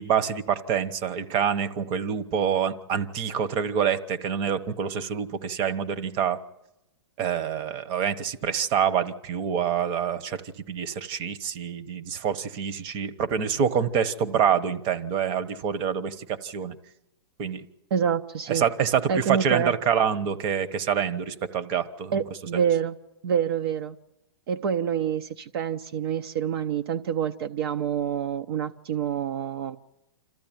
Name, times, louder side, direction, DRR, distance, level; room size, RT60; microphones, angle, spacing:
voice 1, 0.0-6.4 7.2-10.4 10.7-16.7 17.4-17.7 18.5-22.1 22.5-22.6, right 8 dB, 35° right, 12 dB, 1.2 m, -26 dB
voice 2, 17.9-18.7 19.1-19.8 22.1-23.0 23.2-24.0 24.5-29.8, right 8 dB, 60° right, 8 dB, 0.8 m, -27 dB
27.0 x 14.0 x 9.2 m, 0.93 s
hypercardioid pair, 135°, 14 cm